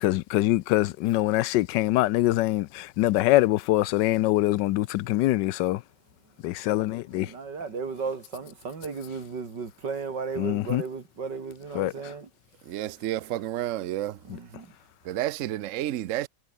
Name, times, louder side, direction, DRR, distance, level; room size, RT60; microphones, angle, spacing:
voice 1, 0.0-5.8 6.4-7.3 10.4-10.8 11.7-11.9, left 16 dB, 85° left, 1.2 m, -24 dB
voice 2, 7.1-12.3 14.2-14.7, right 5 dB, 80° right, 3.5 m, -35 dB
voice 3, 12.7-14.2 15.0-16.3, right 13 dB, 65° right, 0.8 m, -30 dB
omnidirectional pair, 1.8 m